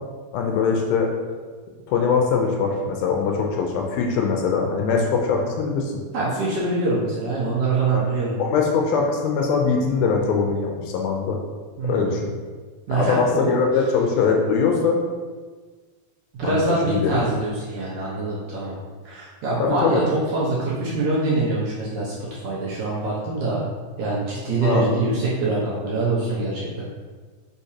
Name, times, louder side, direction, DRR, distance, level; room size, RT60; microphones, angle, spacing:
voice 1, 0.3-1.1 1.9-5.9 7.9-8.0 8.4-11.4 11.9-12.3 12.9-15.0 16.4-17.2 19.6-20.0 24.6-24.9, left 5 dB, 80° left, 1 dB, 2.4 m, -22 dB
voice 2, 6.1-8.4 11.8-12.2 12.9-13.4 16.3-18.8 19.1-22.1 22.4-23.6 24.0-26.8, right 3 dB, 65° right, -7 dB, 2.1 m, -24 dB
6.7 x 5.8 x 2.8 m, 1.5 s
omnidirectional pair, 4.5 m